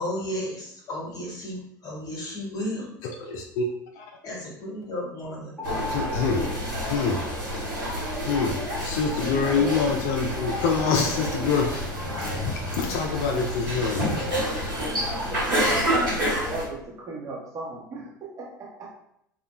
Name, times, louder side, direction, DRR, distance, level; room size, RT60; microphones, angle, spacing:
voice 1, 0.0-2.9 4.2-5.6, left 1 dB, 35° left, -3 dB, 1.0 m, -33 dB
voice 2, 3.2-3.6 4.0-4.1 5.9-6.5 6.9-7.2 8.2-14.6, left 5 dB, 60° left, 2 dB, 0.4 m, -26 dB
sound 1, 5.6-7.4 9.5-12.3, left 1 dB, 5° left, 0.9 m, -39 dB
sound 2, 5.6-16.6, equal, 85° right, 1.0 m, -28 dB
voice 3, 15.3-18.9, right 2 dB, 30° right, -4 dB, 0.9 m, -36 dB
2.2 x 2.0 x 3.0 m, 0.75 s
figure-of-eight pair, 70°, 11 cm